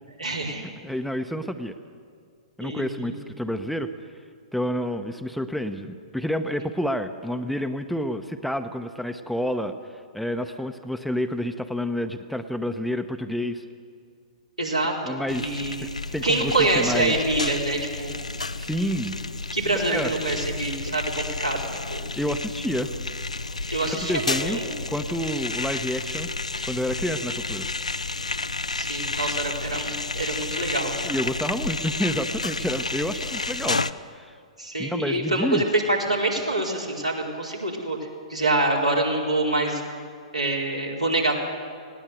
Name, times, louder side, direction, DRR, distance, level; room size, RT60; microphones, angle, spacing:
voice 1, 0.2-0.7 2.6-3.2 14.6-15.9 16.2-18.3 19.5-22.0 23.7-24.1 24.4-24.8 28.7-31.0 34.6-38.0 38.3-39.8 40.3-41.4, right 2 dB, 90° right, -3 dB, 4.5 m, -26 dB
voice 2, 0.8-1.8 2.6-3.9 4.5-13.6 15.1-17.1 18.6-19.2 19.7-20.1 22.2-22.9 23.9-24.6 24.9-26.3 26.6-27.7 31.0-33.8 34.1-34.4 34.8-35.6, equal, ahead, 7 dB, 0.8 m, -29 dB
sound 1, 15.3-33.9, left 3 dB, 80° left, 0.6 m, -31 dB
19.5 x 18.0 x 8.0 m, 2.2 s
figure-of-eight pair, 110°, 4 cm